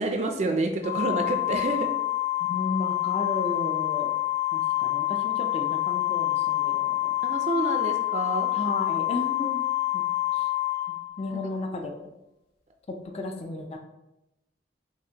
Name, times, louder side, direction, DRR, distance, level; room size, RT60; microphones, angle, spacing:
voice 1, 0.0-1.9 7.2-8.5, right 2 dB, 35° right, 4 dB, 0.3 m, -28 dB
Organ, 0.8-11.6, left 16 dB, 55° left, 1.0 m, -27 dB
voice 2, 2.4-4.1 4.5-7.2 8.5-9.7 9.9-10.0 10.3-10.5 10.9-12.1 13.1-13.8, left 2 dB, 35° left, 4 dB, 0.4 m, -34 dB
5.8 x 2.1 x 2.8 m, 0.93 s
head